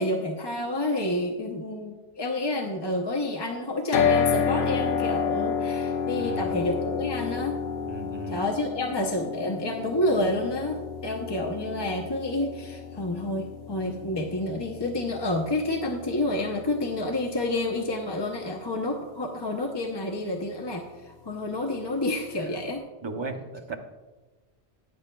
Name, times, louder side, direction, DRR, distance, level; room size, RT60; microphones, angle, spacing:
voice 1, 0.0-7.6 8.3-22.8, left 1 dB, 30° left, 1 dB, 0.6 m, -29 dB
sound 1, 3.9-18.0, left 6 dB, 75° left, 0.9 m, -30 dB
voice 2, 6.2-6.6 7.9-8.4 23.0-23.8, right 2 dB, 30° right, 4 dB, 0.7 m, -36 dB
14.5 x 9.6 x 2.2 m, 1.2 s
omnidirectional pair, 1.1 m